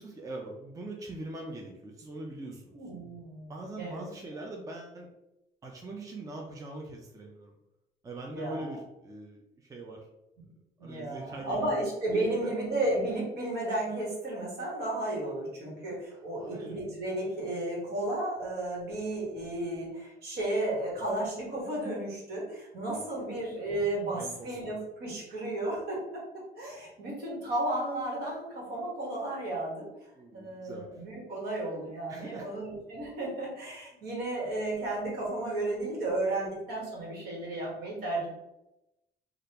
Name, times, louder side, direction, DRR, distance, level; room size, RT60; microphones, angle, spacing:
voice 1, 0.0-2.7 3.5-5.1 5.6-7.5 8.0-10.0 10.8-11.8 12.1-12.5 16.1-16.8 22.9-23.2 24.1-24.7 30.1-31.0 32.1-32.6, right 2 dB, 20° right, 0 dB, 0.5 m, -42 dB
voice 2, 2.7-4.0 4.3-4.4 8.3-8.8 10.8-26.2 26.6-29.9 30.3-38.3, right 1 dB, 70° right, -3 dB, 1.4 m, -33 dB
3.2 x 2.4 x 2.8 m, 0.90 s
cardioid pair, 110°, 17 cm